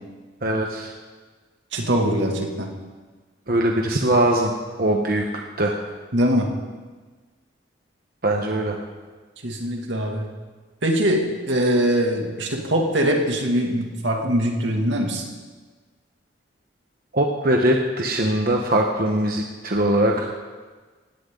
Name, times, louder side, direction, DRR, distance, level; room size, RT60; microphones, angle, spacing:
voice 1, 0.4-0.9 3.5-4.5 4.8-5.3 5.6-5.8 8.2-8.8 17.1-20.3, right 1 dB, 50° right, 1 dB, 1.2 m, -21 dB
voice 2, 1.7-2.7 6.1-6.5 9.4-10.3 10.8-15.2, equal, 80° right, 1 dB, 2.5 m, -22 dB
19.0 x 16.5 x 4.0 m, 1.4 s
head